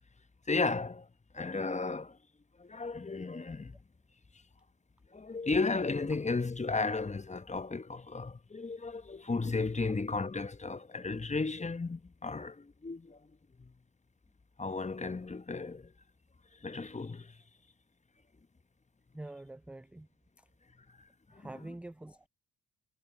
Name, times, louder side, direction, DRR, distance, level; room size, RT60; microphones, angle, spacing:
voice 1, 0.5-1.1 1.3-2.2 2.6-3.8 5.1-13.2 13.6-13.7 14.6-15.9 16.6-17.4 20.9-21.0 21.3-21.5, left 3 dB, 20° left, 1.1 m, -34 dB
voice 2, 19.1-20.1 20.4-20.5 21.3-22.3, right 2 dB, 5° right, 0.3 m, -46 dB
hypercardioid pair, 45°, 39 cm